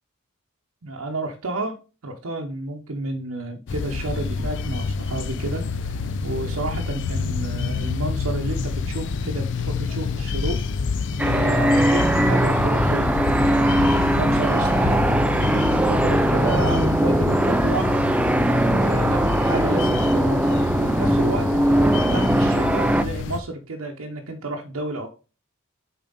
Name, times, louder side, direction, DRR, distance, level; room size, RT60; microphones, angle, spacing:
voice 1, 0.8-1.8 2.0-10.6 11.2-15.6 15.9-17.9 18.6-25.1, right 2 dB, 70° right, 1 dB, 0.8 m, -31 dB
sound 1, 3.7-23.4, left 4 dB, 60° left, 0.4 m, -28 dB
sound 2, 11.2-23.0, right 1 dB, 5° right, 0.3 m, -20 dB
7.0 x 4.4 x 3.9 m, 0.34 s
head